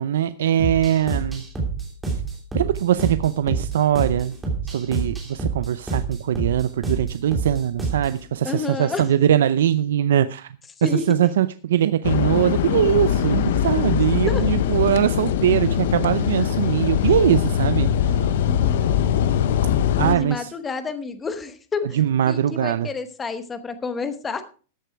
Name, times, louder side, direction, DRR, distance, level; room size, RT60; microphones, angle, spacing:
voice 1, 0.0-1.4 2.5-4.4 4.6-10.5 10.8-18.3 20.0-20.5 21.9-22.9, right 10 dB, 80° right, 13 dB, 0.6 m, -21 dB
Sicily House alt Intro, 0.6-8.2, right 4 dB, 5° right, 2.9 m, -28 dB
voice 2, 8.4-9.0 10.8-11.1 14.3-14.4 18.5-18.8 20.0-22.0 22.3-24.4, left 5 dB, 10° left, 10 dB, 1.0 m, -29 dB
sound 1, 12.0-20.2, left 9 dB, 55° left, 0.9 m, -21 dB
13.5 x 8.3 x 4.6 m, 0.38 s
supercardioid pair, 175°, 0 cm